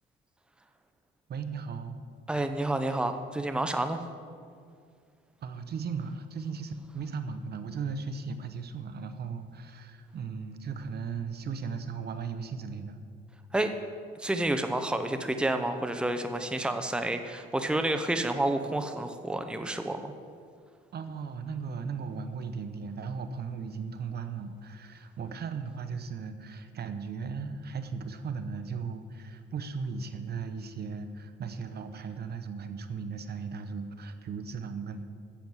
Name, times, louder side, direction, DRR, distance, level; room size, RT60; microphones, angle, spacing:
voice 1, 1.3-2.0 5.4-13.0 20.9-35.0, right 5 dB, 55° right, 9 dB, 0.9 m, -37 dB
voice 2, 2.3-4.0 13.5-13.7 14.2-20.1, right 1 dB, 5° right, 7 dB, 0.8 m, -29 dB
10.5 x 7.8 x 7.3 m, 2.2 s
cardioid pair, 90°, 20 cm